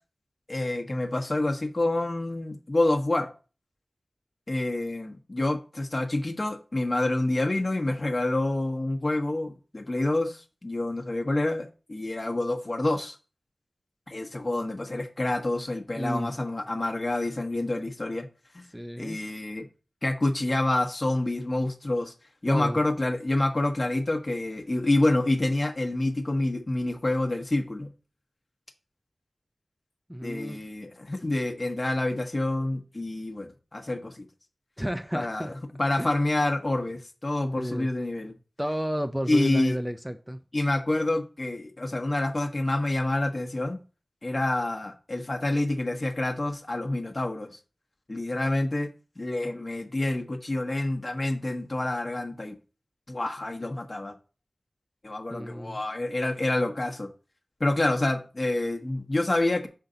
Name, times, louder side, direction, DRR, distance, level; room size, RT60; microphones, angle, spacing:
voice 1, 0.5-3.3 4.5-13.2 14.1-18.3 18.5-18.7 19.0-19.6 20.0-22.1 22.4-27.9 30.2-34.2 35.1-35.5 35.8-38.3 39.3-39.8 40.5-43.8 44.2-47.6 48.1-48.9 49.2-52.6 53.1-54.1 55.0-57.1 57.6-59.7, left 2 dB, 45° left, 1.2 m, -27 dB
voice 2, 16.0-16.3 18.7-19.2 22.5-22.8 30.1-30.6 34.8-35.5 36.0-36.1 37.5-37.9 38.6-40.4 55.3-55.8, equal, 5° right, 0.5 m, -31 dB
5.7 x 5.3 x 3.9 m
wide cardioid pair, 50°, 0 cm